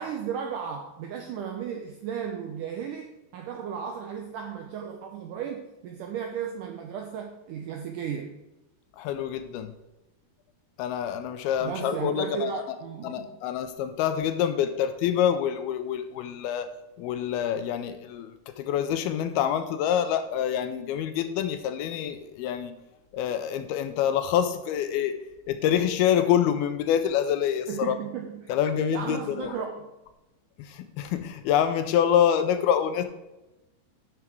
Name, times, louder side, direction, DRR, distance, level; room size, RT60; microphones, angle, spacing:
voice 1, 0.0-8.4 11.6-13.4 27.7-28.5 28.9-29.9, right 7 dB, 85° right, 3 dB, 1.9 m, -35 dB
voice 2, 8.9-9.8 10.8-12.8 13.0-16.7 17.0-22.7 23.1-25.2 25.5-27.9 28.5-29.6 30.6-33.0, left 9 dB, 80° left, 9 dB, 2.4 m, -26 dB
11.0 x 6.0 x 4.6 m, 0.99 s
omnidirectional pair, 4.7 m